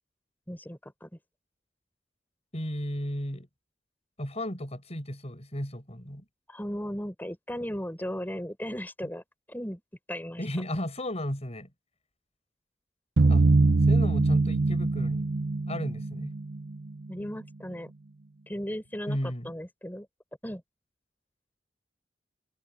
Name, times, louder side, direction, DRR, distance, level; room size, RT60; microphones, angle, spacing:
voice 1, 0.5-1.1 6.5-9.2 9.5-9.8 10.1-10.4 17.1-17.9 18.5-20.1 20.4-20.6, equal, 10° left, 6.1 m, -36 dB
voice 2, 2.5-3.5 4.2-6.2 10.4-11.7 13.3-13.5 13.9-15.3 15.7-16.3 19.1-19.5, left 1 dB, 40° left, 7.8 m, -34 dB
sound 1, 13.2-16.9, right 3 dB, 65° right, 0.7 m, -23 dB
head